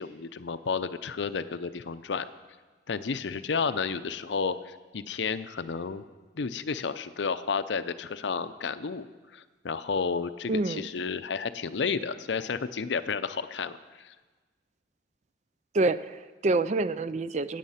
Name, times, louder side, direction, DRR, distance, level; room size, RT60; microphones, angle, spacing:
voice 1, 0.0-2.3 2.9-6.0 6.4-9.1 9.3-14.1, left 5 dB, 75° left, 13 dB, 0.6 m, -31 dB
voice 2, 10.5-10.9 15.7-17.6, right 2 dB, 40° right, 14 dB, 0.4 m, -27 dB
15.5 x 8.3 x 5.7 m, 1.3 s
head